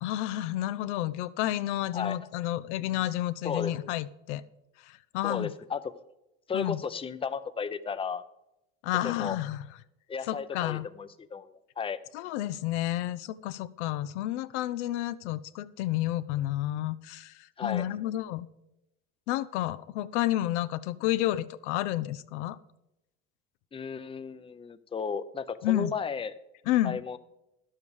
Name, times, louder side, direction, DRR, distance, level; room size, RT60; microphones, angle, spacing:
voice 1, 0.0-4.4 4.8-5.5 6.5-6.8 8.8-9.6 10.3-10.9 12.1-18.5 19.3-22.6 25.6-25.9 26.7-27.0, left 14 dB, 80° left, 13 dB, 0.6 m, -30 dB
voice 2, 3.4-3.9 5.2-5.8 6.5-8.2 9.0-9.4 10.1-12.0 17.6-17.8 23.7-26.3 26.8-27.2, left 6 dB, 15° left, 11 dB, 0.6 m, -34 dB
10.5 x 7.4 x 4.9 m, 0.89 s
supercardioid pair, 90°, 34 cm